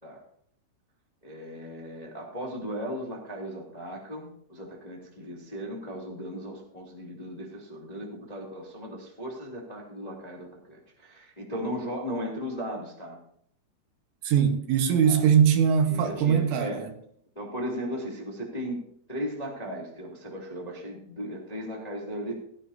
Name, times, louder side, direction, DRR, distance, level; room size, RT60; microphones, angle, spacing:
voice 1, 1.2-13.2 15.0-15.2 15.9-16.8 17.3-18.8 19.1-22.3, equal, 15° left, 1.6 m, -36 dB
voice 2, 14.3-16.8, right 8 dB, 80° right, 3.6 m, -21 dB
16.0 x 15.5 x 2.8 m
omnidirectional pair, 5.5 m